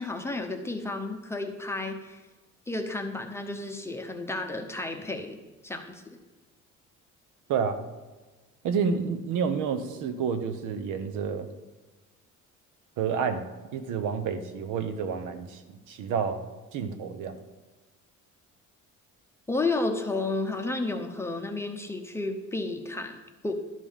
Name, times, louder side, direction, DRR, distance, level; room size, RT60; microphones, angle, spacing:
voice 1, 0.0-2.2 2.7-5.4 5.6-6.2 19.5-23.5, left 2 dB, 10° left, 3 dB, 0.7 m, -32 dB
voice 2, 7.5-7.9 8.6-11.5 13.0-13.5 13.7-15.6 15.9-16.4 16.7-17.4, right 6 dB, 85° right, 9 dB, 1.0 m, -29 dB
12.5 x 5.3 x 5.6 m, 1.2 s
cardioid pair, 170°, 30 cm